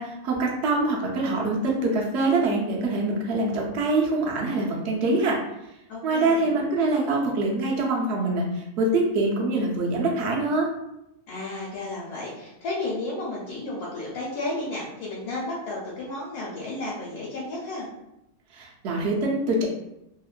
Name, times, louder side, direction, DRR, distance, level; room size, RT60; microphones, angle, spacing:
voice 1, 0.0-5.4 6.0-10.7 18.5-19.7, right 2 dB, 75° right, -1 dB, 0.6 m, -24 dB
voice 2, 5.9-6.5 11.3-17.9, left 2 dB, 75° left, -5 dB, 1.1 m, -33 dB
2.8 x 2.1 x 2.4 m, 0.86 s
omnidirectional pair, 1.7 m